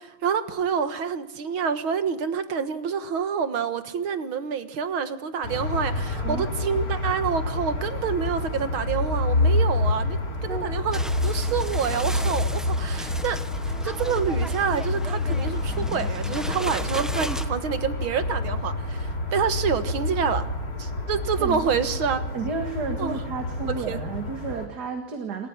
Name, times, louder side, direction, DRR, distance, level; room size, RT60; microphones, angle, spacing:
voice 1, 0.0-13.4 13.7-20.5 20.8-22.2 23.0-23.2 23.9-24.0, right 6 dB, 70° right, 10 dB, 2.3 m, -27 dB
sound 1, 5.4-24.7, left 2 dB, 45° left, 3.3 m, -28 dB
sound 2, 10.9-17.4, equal, ahead, 0.4 m, -36 dB
voice 2, 21.4-21.7 22.3-25.5, right 5 dB, 50° right, 5 dB, 2.3 m, -32 dB
28.0 x 15.5 x 9.9 m, 1.0 s
omnidirectional pair, 2.3 m